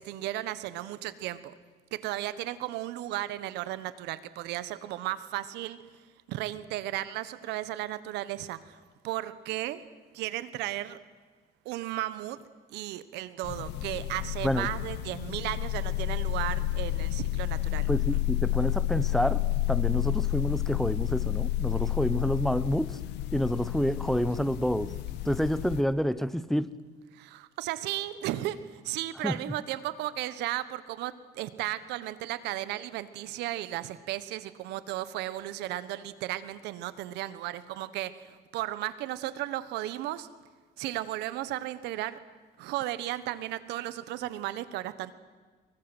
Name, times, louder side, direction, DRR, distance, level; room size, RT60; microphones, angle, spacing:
voice 1, 0.0-1.5 1.9-5.8 6.3-9.8 10.1-11.0 11.6-12.4 12.7-18.2 27.1-40.3 40.8-42.2 42.6-45.1, right 15 dB, 90° right, 15 dB, 1.4 m, -35 dB
sound 1, 13.4-25.8, left 15 dB, 90° left, 0.9 m, -30 dB
voice 2, 17.9-23.0 23.3-24.9 25.2-26.8 29.2-29.3, equal, ahead, 15 dB, 0.9 m, -28 dB
24.0 x 23.0 x 8.0 m, 1.4 s
cardioid pair, 110°, 17 cm